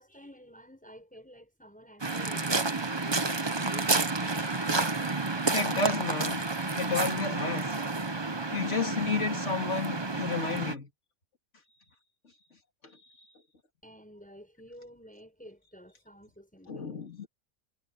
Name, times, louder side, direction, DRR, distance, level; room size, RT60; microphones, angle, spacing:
voice 1, 0.0-4.5 13.8-17.0, equal, 5° left, 7.2 m, -52 dB
Waves surf, 2.0-10.8, right 3 dB, 20° right, 1.0 m, -30 dB
voice 2, 5.5-6.4 6.8-7.7 8.5-10.9 12.8-12.9 13.2-13.3 16.7-17.3, left 4 dB, 65° left, 3.0 m, -31 dB
omnidirectional pair, 1.3 m